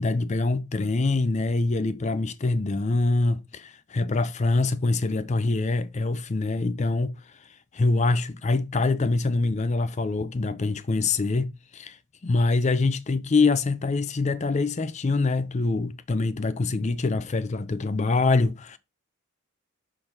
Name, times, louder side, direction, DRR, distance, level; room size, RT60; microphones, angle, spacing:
voice 1, 0.0-7.5 7.7-12.0 12.2-18.8, left 3 dB, 30° left, 0.4 m, -25 dB
6.5 x 3.9 x 4.4 m
head